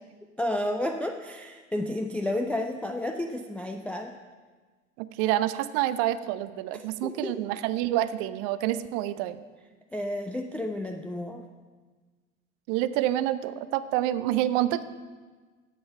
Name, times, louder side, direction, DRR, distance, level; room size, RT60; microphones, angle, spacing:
voice 1, 0.4-4.1 6.7-7.4 9.9-11.5, left 1 dB, 5° left, 4 dB, 0.3 m, -31 dB
voice 2, 5.0-9.4 12.7-14.8, right 13 dB, 50° right, 14 dB, 0.5 m, -27 dB
9.4 x 7.8 x 5.7 m, 1.4 s
figure-of-eight pair, 60°, 37 cm